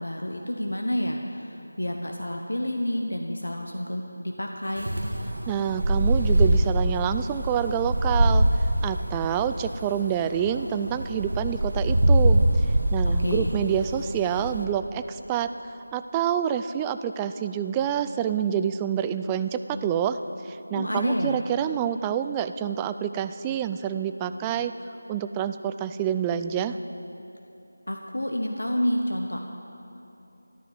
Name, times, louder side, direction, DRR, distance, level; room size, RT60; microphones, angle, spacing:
voice 1, 0.0-4.9 13.2-13.5 20.7-21.4 27.9-29.4, equal, 80° left, 2 dB, 1.3 m, -29 dB
Wind, 4.8-14.6, right 1 dB, 70° right, 1.8 m, -24 dB
voice 2, 5.5-8.5 8.8-12.7 12.9-15.5 15.9-20.2 20.4-24.7 25.1-26.8, right 9 dB, 10° right, 10 dB, 0.3 m, -27 dB
14.0 x 11.5 x 7.8 m, 2.9 s
figure-of-eight pair, 165°, 0 cm